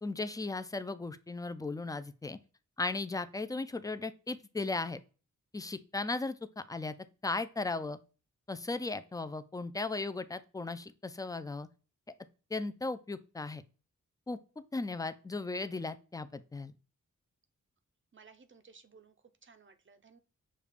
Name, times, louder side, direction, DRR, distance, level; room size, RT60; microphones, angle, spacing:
voice 1, 0.0-2.4 2.8-5.0 5.5-6.9 7.2-8.0 8.5-11.7 12.5-13.6 14.3-14.4 14.7-16.7, left 3 dB, 10° left, 0.3 m, -36 dB
voice 2, 18.1-19.1 19.4-20.2, right 5 dB, 40° right, 0.5 m, -58 dB
6.5 x 2.3 x 3.4 m
wide cardioid pair, 95°, 31 cm